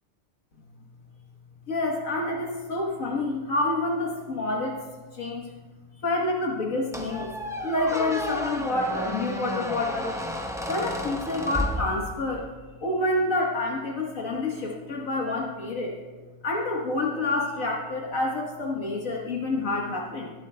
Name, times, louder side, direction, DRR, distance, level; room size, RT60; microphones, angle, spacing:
voice 1, 1.7-4.8 5.1-5.5 6.0-10.2 10.7-12.5 12.7-16.0 16.4-20.3, left 2 dB, 65° left, -1 dB, 1.6 m, -28 dB
Squeak, 6.9-12.4, left 1 dB, 5° right, 0.4 m, -32 dB
19.0 x 11.0 x 2.2 m, 1.3 s
omnidirectional pair, 1.5 m